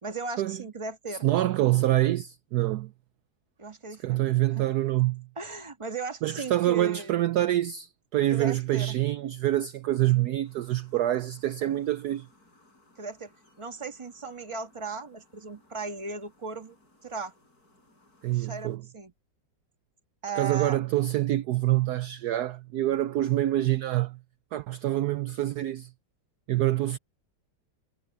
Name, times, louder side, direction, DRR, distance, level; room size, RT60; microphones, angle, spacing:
voice 1, 0.0-1.3 3.6-4.2 4.5-4.6 5.4-7.2 8.3-9.0 13.0-13.3 13.6-16.8 17.0-17.3 18.3-19.1 20.2-20.8, right 4 dB, 15° right, 1.4 m, -37 dB
voice 2, 1.2-2.9 4.0-5.3 6.2-12.3 18.2-18.8 20.4-24.2 24.5-25.9 26.5-27.0, right 14 dB, 70° right, 1.0 m, -26 dB
sound 1, 10.4-18.8, left 2 dB, 50° left, 8.5 m, -63 dB
omnidirectional pair, 2.0 m